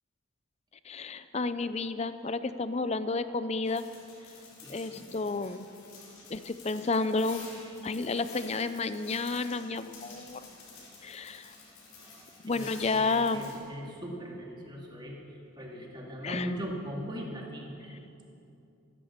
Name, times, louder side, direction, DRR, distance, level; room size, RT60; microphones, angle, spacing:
voice 1, 0.8-3.8 4.7-5.6 6.3-7.4 7.8-10.5 11.0-11.5 12.4-13.5 16.2-16.5, left 3 dB, 30° left, 12 dB, 0.5 m, -31 dB
sound 1, 3.6-13.6, left 3 dB, 85° left, 4.6 m, -50 dB
voice 2, 4.6-5.0 12.5-15.2 15.6-17.9, equal, 20° right, -1 dB, 2.1 m, -39 dB
14.5 x 11.5 x 7.3 m, 2.7 s
head